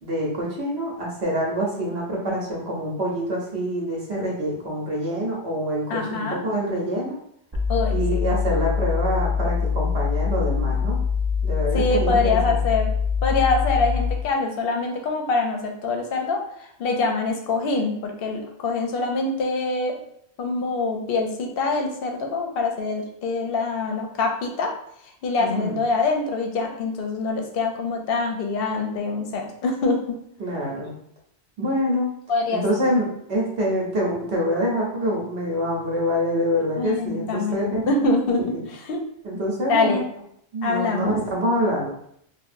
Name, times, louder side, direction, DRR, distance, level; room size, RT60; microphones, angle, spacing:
voice 1, 0.0-7.1 7.9-11.0 11.4-12.6 25.4-25.8 30.4-30.9 31.6-32.1 32.5-38.1 39.2-40.0 40.5-41.0 41.3-41.9, equal, 75° right, -3 dB, 1.0 m, -26 dB
voice 2, 5.9-6.4 7.7-8.4 11.7-12.9 13.2-20.0 20.4-24.7 25.2-30.2 32.3-32.6 36.8-39.0 39.7-40.0 40.6-41.2, left 3 dB, 65° left, 3 dB, 0.7 m, -24 dB
sound 1, 7.5-14.3, left 6 dB, 35° right, 0.4 m, -24 dB
2.8 x 2.3 x 2.5 m, 0.71 s
omnidirectional pair, 1.1 m